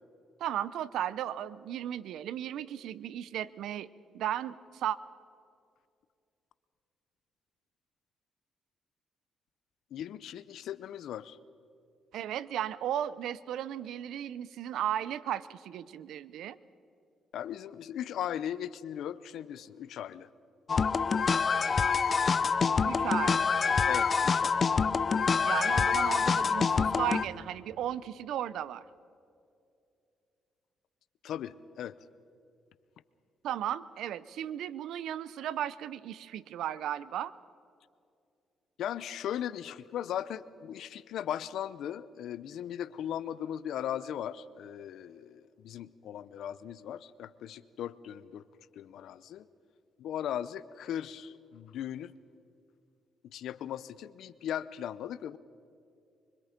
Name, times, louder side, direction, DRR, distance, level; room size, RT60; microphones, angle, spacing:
voice 1, 0.4-5.0 12.1-16.6 22.8-23.6 25.4-28.8 33.4-37.3, right 11 dB, 80° right, 17 dB, 0.7 m, -35 dB
voice 2, 9.9-11.4 17.3-20.3 23.9-24.7 31.2-31.9 38.8-48.4 48.8-49.5 50.0-52.1 53.2-55.4, left 10 dB, 75° left, 16 dB, 0.7 m, -38 dB
sound 1, 20.7-27.2, left 5 dB, 40° left, 0.7 m, -26 dB
25.0 x 24.5 x 5.2 m, 2.5 s
cardioid pair, 90°, 0 cm